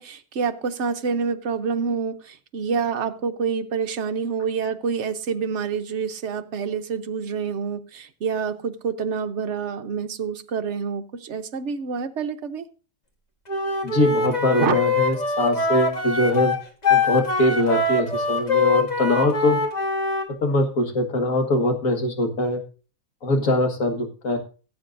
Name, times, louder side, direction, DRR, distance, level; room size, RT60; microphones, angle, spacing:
voice 1, 0.0-12.7 14.6-14.8, right 6 dB, 55° right, 7 dB, 1.0 m, -27 dB
Wind instrument woodwind instrument, 13.5-20.3, left 3 dB, 30° left, 1.4 m, -23 dB
voice 2, 13.8-16.5 16.9-19.6 20.4-22.6 23.2-24.4, left 1 dB, 60° left, 4 dB, 2.0 m, -22 dB
17.5 x 8.3 x 2.5 m, 0.36 s
omnidirectional pair, 1.6 m